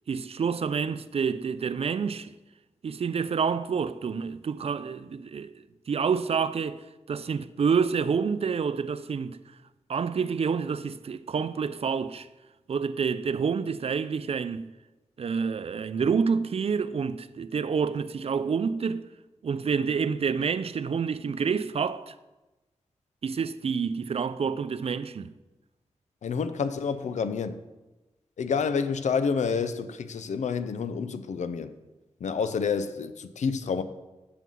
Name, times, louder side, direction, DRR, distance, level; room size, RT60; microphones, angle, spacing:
voice 1, 0.1-2.3 2.8-5.5 5.9-6.8 7.1-9.4 9.9-12.3 12.7-14.7 15.2-19.1 19.4-22.1 23.2-25.3, right 6 dB, 55° right, 0.4 m, -28 dB
voice 2, 26.2-27.6 28.4-31.7 32.2-33.8, left 5 dB, 85° left, 0.5 m, -28 dB
6.9 x 5.4 x 6.2 m
cardioid pair, 65°, 12 cm